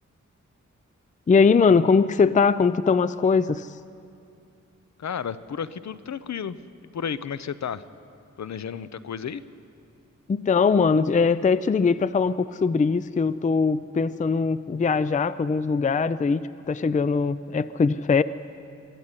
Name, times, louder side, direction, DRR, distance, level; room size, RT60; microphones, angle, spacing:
voice 1, 1.3-3.8 10.3-16.4 16.7-18.2, left 5 dB, 25° left, 15 dB, 0.4 m, -21 dB
voice 2, 5.0-6.6 6.8-7.8 8.4-9.4, left 7 dB, 65° left, 14 dB, 0.7 m, -32 dB
23.0 x 14.0 x 9.8 m, 2.4 s
wide cardioid pair, 105°, 30 cm